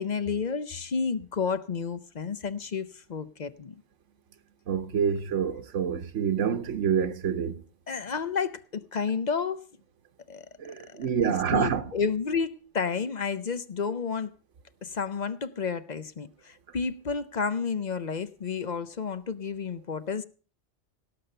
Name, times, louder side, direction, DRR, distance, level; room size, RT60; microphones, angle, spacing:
voice 1, 0.0-3.7 7.9-9.6 10.3-10.5 10.9-14.3 14.8-20.2, left 5 dB, 45° left, 0.7 m, -31 dB
voice 2, 4.7-7.6 10.6-11.8, right 7 dB, 90° right, 1.2 m, -27 dB
17.5 x 5.9 x 6.7 m
omnidirectional pair, 1.2 m